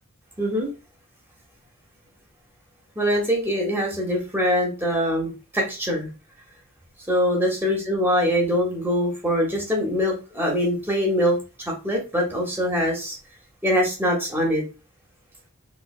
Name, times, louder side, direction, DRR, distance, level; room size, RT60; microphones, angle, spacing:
voice 1, 0.4-0.7 3.0-6.1 7.1-13.2 13.6-14.6, equal, 10° right, -1 dB, 1.0 m, -23 dB
3.3 x 3.2 x 2.3 m, 0.32 s
head